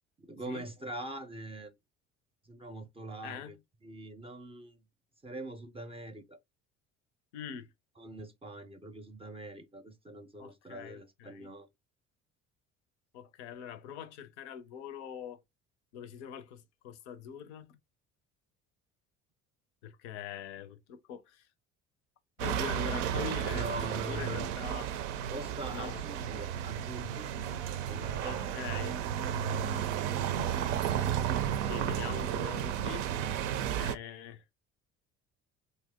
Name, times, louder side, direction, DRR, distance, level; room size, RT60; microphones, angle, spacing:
voice 1, 0.2-1.7 2.4-3.6 3.8-4.8 5.2-6.4 8.0-11.7 23.4-24.5 25.3-27.3 27.9-28.5, right 2 dB, 15° right, 0.4 m, -43 dB
voice 2, 3.2-3.5 7.3-7.7 10.4-11.5 13.1-15.4 15.9-17.8 19.8-21.5 22.4-23.7 23.9-24.9 25.7-26.0 28.2-29.0 31.6-33.1 33.8-34.4, left 8 dB, 85° left, 0.5 m, -43 dB
sound 1, 22.4-33.9, right 9 dB, 80° right, 0.5 m, -33 dB
2.7 x 2.0 x 3.4 m
hypercardioid pair, 65°, 34 cm